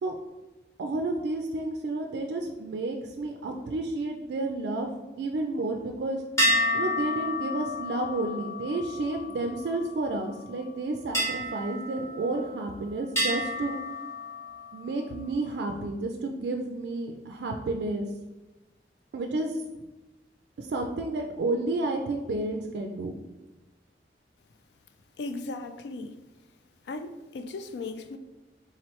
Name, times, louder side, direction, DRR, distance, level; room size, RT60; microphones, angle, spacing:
voice 1, 0.8-4.9 5.2-6.2 6.7-13.8 14.7-18.1 19.1-19.5 20.6-23.1, right 2 dB, 75° right, 3 dB, 0.3 m, -31 dB
sound 1, 6.4-10.1 11.1-12.7 13.2-14.8, left 1 dB, 15° left, 1.0 m, -30 dB
voice 2, 25.2-26.2 26.9-28.2, left 3 dB, 75° left, 8 dB, 0.3 m, -37 dB
3.8 x 3.1 x 2.9 m, 1.1 s
head